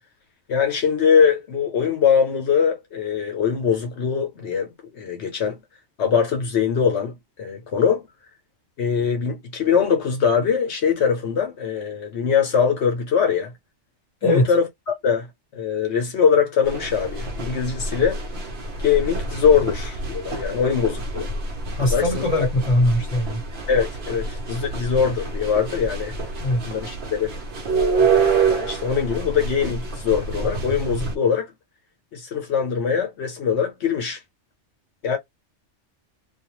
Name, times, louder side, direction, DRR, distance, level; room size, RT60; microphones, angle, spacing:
voice 1, 0.5-5.6 6.0-8.1 8.8-13.5 14.2-15.3 15.5-18.2 18.8-21.3 21.9-22.2 23.7-26.1 26.6-27.4 28.0-31.5 32.1-34.2 35.0-35.2, left 7 dB, 70° left, 1.0 m, -22 dB
sound 1, 16.6-31.2, right 4 dB, 65° right, 0.9 m, -27 dB
voice 2, 21.8-23.4 26.4-26.6, left 1 dB, 30° left, 1.1 m, -21 dB
2.4 x 2.3 x 3.0 m
omnidirectional pair, 1.2 m